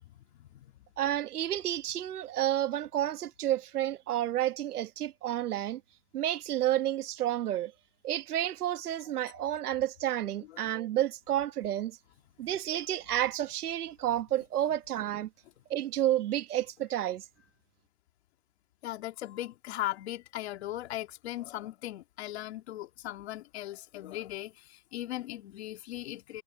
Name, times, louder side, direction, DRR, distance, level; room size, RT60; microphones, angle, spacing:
voice 1, 0.3-0.7 9.3-9.5 10.5-10.7 18.8-26.4, left 14 dB, 45° left, 2.9 m, -38 dB
voice 2, 1.0-5.8 6.1-7.7 8.0-12.0 12.4-15.3 15.7-17.2, right 12 dB, 75° right, 1.3 m, -30 dB
supercardioid pair, 175°, 45 cm